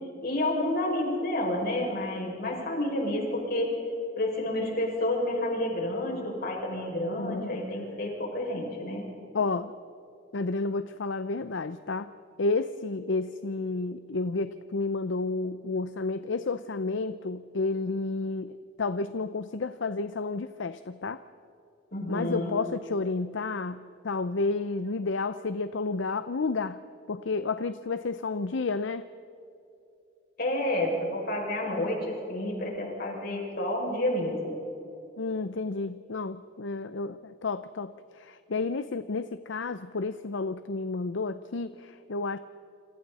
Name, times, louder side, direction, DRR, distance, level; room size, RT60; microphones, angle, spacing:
voice 1, 0.2-3.8 4.2-9.1 21.9-22.6 30.4-34.6, left 1 dB, 55° left, -1 dB, 6.2 m, -30 dB
voice 2, 7.1-7.6 9.3-9.7 10.3-12.1 12.4-21.2 22.1-26.8 27.1-29.1 35.2-42.4, left 3 dB, 75° left, 12 dB, 0.6 m, -31 dB
28.5 x 26.5 x 4.2 m, 2.8 s
head